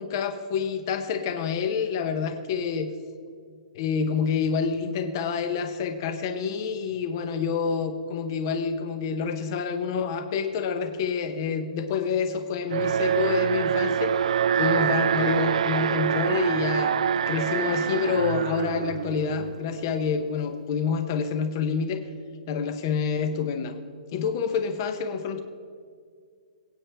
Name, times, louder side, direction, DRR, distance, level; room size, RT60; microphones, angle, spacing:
voice 1, 0.0-2.9 3.7-14.2 14.6-22.0 22.5-23.7 24.1-25.4, left 6 dB, 30° left, 8 dB, 0.7 m, -28 dB
Alarm, 12.7-19.8, right 8 dB, 55° right, 0.4 m, -25 dB
22.0 x 8.8 x 3.4 m, 2.1 s
hypercardioid pair, 175°, 4 cm